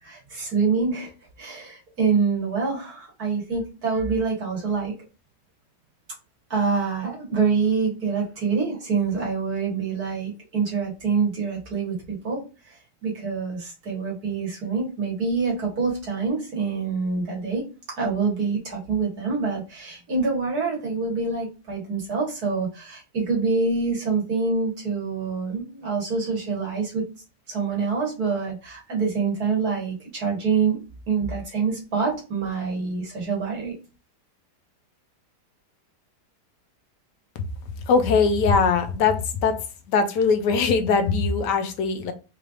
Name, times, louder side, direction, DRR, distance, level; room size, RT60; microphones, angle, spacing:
voice 1, 0.0-1.1 1.4-4.9 6.5-12.0 12.2-12.4 12.7-12.8 13.0-17.6 18.0-27.0 27.5-30.8 31.1-33.7, right 5 dB, 65° right, -3 dB, 2.2 m, -26 dB
voice 2, 37.9-39.6 39.9-42.1, left 5 dB, 90° left, 8 dB, 1.3 m, -21 dB
4.5 x 3.3 x 2.5 m, 0.32 s
omnidirectional pair, 1.8 m